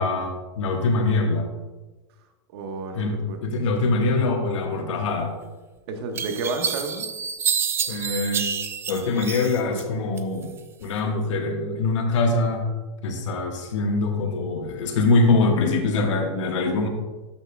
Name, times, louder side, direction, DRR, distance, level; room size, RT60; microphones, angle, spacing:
voice 1, 0.0-1.5 2.9-5.3 7.9-8.5 8.9-10.5 10.8-12.7 13.0-16.9, left 3 dB, 75° left, 3 dB, 1.4 m, -23 dB
voice 2, 2.5-3.4 5.9-7.1, right 3 dB, 55° right, 4 dB, 1.2 m, -31 dB
sound 1, 5.4-5.5 6.2-9.8 10.2-10.9, right 7 dB, 15° right, 0.3 m, -28 dB
12.5 x 5.8 x 2.3 m, 1.2 s
supercardioid pair, 140°, 16 cm